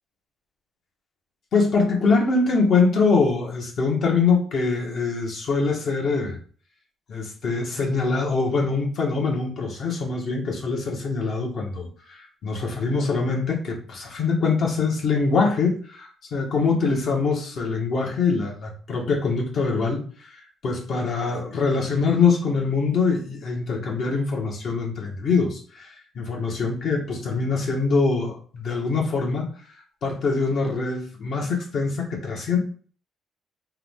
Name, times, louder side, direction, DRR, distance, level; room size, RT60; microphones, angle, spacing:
voice 1, 1.5-6.4 7.1-29.5 30.0-32.6, left 4 dB, 65° left, 0 dB, 1.4 m, -24 dB
3.7 x 3.1 x 3.6 m, 0.43 s
cardioid pair, 90°, 0 cm